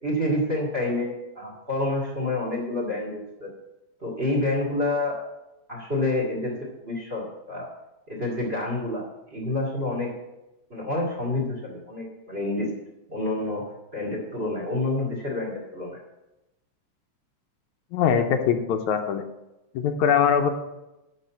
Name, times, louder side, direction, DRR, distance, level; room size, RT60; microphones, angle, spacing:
voice 1, 0.0-3.5 4.0-5.2 5.7-6.5 6.8-7.7 8.1-10.1 10.7-12.7 13.1-13.6 13.9-16.0, left 2 dB, 20° right, 0 dB, 2.1 m, -28 dB
voice 2, 17.9-19.2 19.8-20.5, left 7 dB, 80° left, 6 dB, 2.1 m, -22 dB
11.5 x 4.2 x 8.1 m, 0.96 s
omnidirectional pair, 3.4 m